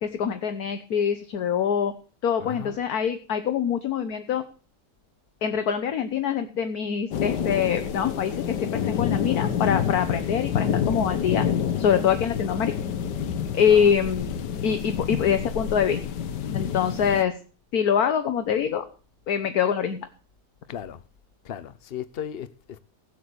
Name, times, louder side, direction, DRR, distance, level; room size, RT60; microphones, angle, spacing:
voice 1, 0.0-1.9 2.2-4.4 5.4-11.5 11.8-12.7 13.5-16.0 16.5-17.3 17.7-18.8 19.3-20.0, left 8 dB, 60° left, 1.5 m, -24 dB
voice 2, 2.4-2.8 13.7-14.0 20.7-21.0 21.4-22.8, left 9 dB, 45° left, 0.9 m, -36 dB
sound 1, 7.1-17.2, left 8 dB, 80° left, 1.6 m, -28 dB
sound 2, 9.7-16.0, right 2 dB, 25° right, 3.7 m, -44 dB
17.5 x 8.1 x 6.9 m
omnidirectional pair, 1.8 m